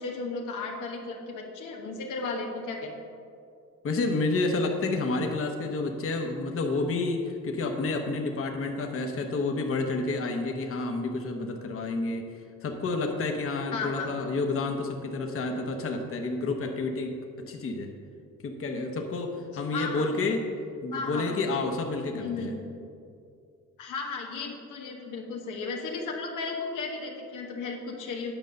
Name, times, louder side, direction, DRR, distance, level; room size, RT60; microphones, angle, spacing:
voice 1, 0.0-2.9 13.7-14.2 19.7-20.1 20.9-21.3 22.1-22.5 23.8-28.3, left 4 dB, 90° left, 0 dB, 1.3 m, -34 dB
voice 2, 3.8-12.3 12.6-17.2 17.5-17.9 18.4-20.4 20.8-22.5, left 3 dB, 45° left, 3 dB, 1.0 m, -29 dB
9.1 x 5.3 x 6.4 m, 2.4 s
cardioid pair, 90°, 30 cm